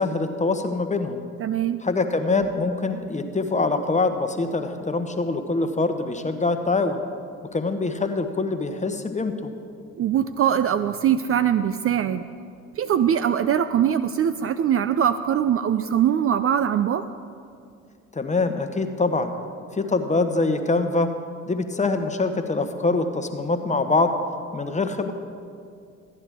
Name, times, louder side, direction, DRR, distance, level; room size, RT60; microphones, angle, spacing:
voice 1, 0.0-1.2 1.8-7.0 7.5-9.5 18.1-19.3 19.7-21.1 21.5-24.1 24.5-25.1, left 3 dB, 20° left, 7 dB, 1.0 m, -24 dB
voice 2, 1.4-1.8 10.0-12.3 12.8-17.1, right 9 dB, 40° right, 12 dB, 0.4 m, -22 dB
13.5 x 9.7 x 3.6 m, 2.4 s
hypercardioid pair, 55°, 36 cm